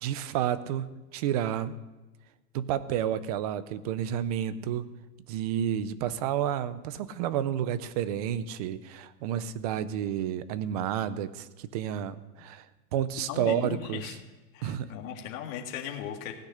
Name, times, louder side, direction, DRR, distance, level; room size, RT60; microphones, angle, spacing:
voice 1, 0.0-1.7 2.5-4.9 5.3-12.7 12.9-14.1 14.6-14.9, right 10 dB, 25° right, 15 dB, 0.4 m, -30 dB
voice 2, 13.3-14.1 14.5-16.3, left 9 dB, 55° left, 1 dB, 2.0 m, -37 dB
17.0 x 6.4 x 9.8 m, 1.1 s
supercardioid pair, 155°, 48 cm